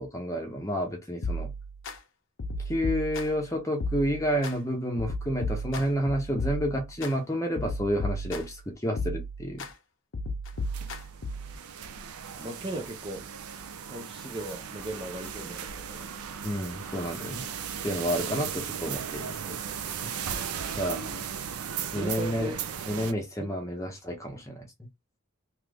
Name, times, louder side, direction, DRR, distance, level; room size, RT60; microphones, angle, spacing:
voice 1, 0.0-1.5 2.7-9.7 16.4-17.5 17.8-19.6 20.7-21.0 21.9-22.6 22.8-24.7, equal, 15° left, 0.7 m, -30 dB
sound 1, 1.2-2.0 2.4-3.5 3.8-4.5 5.0-7.1 7.6-8.6 9.0-9.7 10.1-11.6, left 1 dB, 60° left, 0.6 m, -34 dB
sound 2, 10.6-23.1, right 7 dB, 80° right, 0.5 m, -37 dB
voice 2, 12.4-13.2 13.9-15.6 15.9-16.1 20.9-21.2 21.9-22.5 23.4-23.5, right 2 dB, 20° right, 0.5 m, -37 dB
3.0 x 2.4 x 3.4 m
head